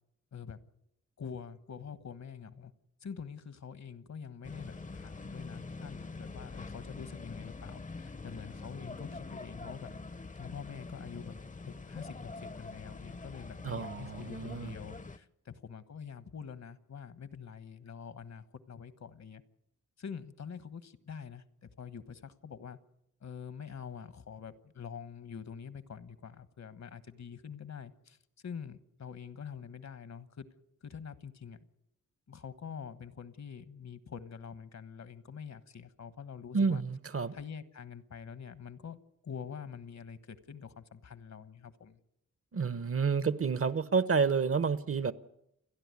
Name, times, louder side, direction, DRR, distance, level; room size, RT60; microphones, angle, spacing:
voice 1, 1.2-2.7 3.0-9.9 10.4-19.4 20.0-22.8 23.2-28.2 28.4-30.5 30.8-31.7 32.3-36.8 37.3-42.0, left 6 dB, 65° left, 1.3 m, -46 dB
sound 1, 4.4-15.2, left 3 dB, 25° left, 0.7 m, -45 dB
voice 2, 13.6-14.7 36.5-37.3 42.5-45.1, right 5 dB, 50° right, 1.0 m, -29 dB
30.0 x 11.0 x 9.7 m
wide cardioid pair, 100°, 29 cm